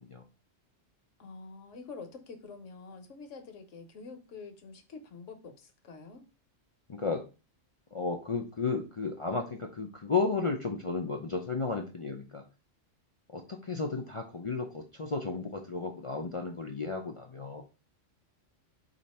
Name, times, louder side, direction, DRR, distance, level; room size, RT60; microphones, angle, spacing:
voice 1, 1.2-6.2, left 4 dB, 75° left, 5 dB, 1.2 m, -47 dB
voice 2, 6.9-7.2 7.9-12.4 13.3-17.6, left 4 dB, 55° left, 2 dB, 0.3 m, -33 dB
5.0 x 2.5 x 4.2 m, 0.32 s
omnidirectional pair, 1.3 m